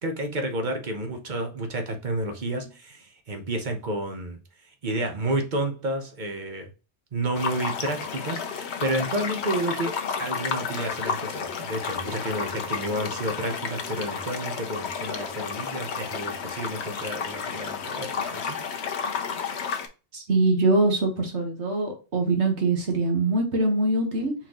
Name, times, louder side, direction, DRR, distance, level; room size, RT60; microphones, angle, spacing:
voice 1, 0.0-4.4 4.8-6.7 7.1-9.9 10.2-18.6, right 1 dB, 45° right, 1.1 m, -30 dB
sound 1, 7.3-19.9, left 6 dB, 75° left, 1.0 m, -32 dB
voice 2, 20.1-24.3, right 2 dB, 75° right, 1.6 m, -23 dB
4.4 x 3.9 x 3.0 m
omnidirectional pair, 1.1 m